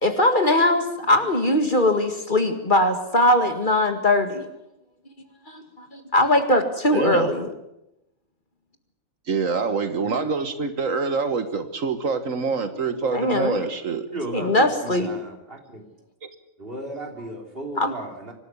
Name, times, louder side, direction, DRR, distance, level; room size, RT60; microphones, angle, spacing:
voice 1, 0.0-4.5 5.5-7.5 13.1-13.7 14.3-15.1 17.8-17.9, left 1 dB, 35° left, 7 dB, 2.1 m, -21 dB
voice 2, 6.9-7.3 9.3-14.1 16.2-16.3, right 4 dB, 75° right, 10 dB, 1.8 m, -25 dB
voice 3, 14.1-14.7 15.0-15.8 16.6-18.3, right 1 dB, 45° right, 3 dB, 3.4 m, -35 dB
25.0 x 12.5 x 9.6 m, 0.86 s
omnidirectional pair, 1.4 m